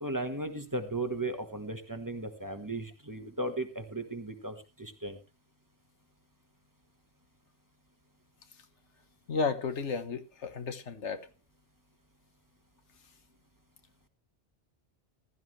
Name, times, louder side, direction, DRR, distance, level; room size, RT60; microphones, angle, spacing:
voice 1, 0.0-5.2, right 2 dB, 15° right, 1.4 m, -36 dB
voice 2, 9.3-11.2, left 4 dB, 90° left, 1.5 m, -33 dB
15.5 x 12.5 x 3.2 m
omnidirectional pair, 1.1 m